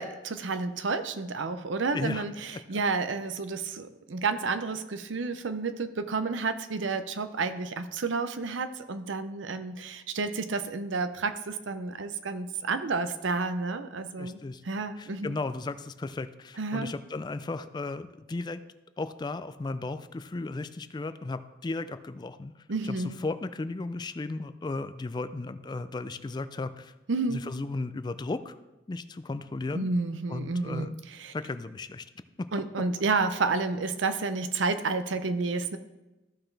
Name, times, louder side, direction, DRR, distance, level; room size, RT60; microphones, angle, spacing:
voice 1, 0.0-15.4 16.6-16.9 22.7-23.2 27.1-27.4 29.7-31.3 32.5-35.8, right 4 dB, 85° right, 10 dB, 0.6 m, -30 dB
voice 2, 1.9-2.2 2.5-2.8 14.2-14.6 15.0-18.6 19.0-22.5 22.8-26.9 27.3-28.6 28.9-29.9 30.3-31.0 31.3-32.1 32.4-32.5, left 3 dB, 25° left, 12 dB, 0.3 m, -35 dB
14.0 x 5.9 x 3.3 m, 1.0 s
head